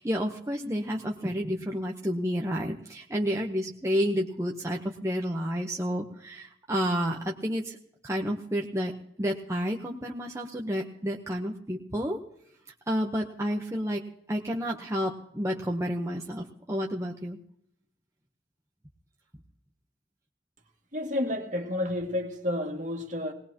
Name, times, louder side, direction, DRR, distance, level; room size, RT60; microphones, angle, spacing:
voice 1, 0.0-7.8 8.0-12.2 12.9-14.0 14.3-17.4, equal, 15° right, 0.9 m, -30 dB
voice 2, 20.9-23.3, left 1 dB, 45° right, 2.1 m, -30 dB
20.0 x 19.5 x 3.0 m
head